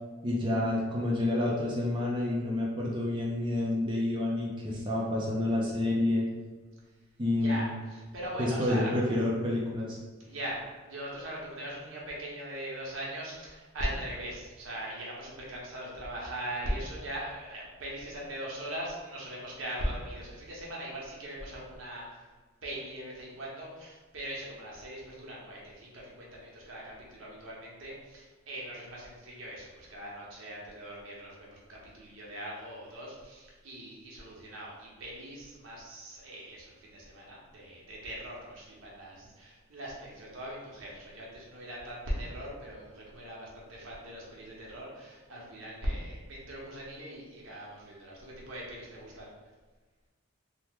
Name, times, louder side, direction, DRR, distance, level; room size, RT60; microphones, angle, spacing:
voice 1, 0.2-6.3 7.2-7.7 8.4-10.0, left 1 dB, 25° right, -5 dB, 0.4 m, -29 dB
voice 2, 7.4-9.0 10.2-22.3 22.6-49.3, right 1 dB, 75° right, -4 dB, 0.9 m, -40 dB
2.9 x 2.1 x 3.4 m, 1.3 s
head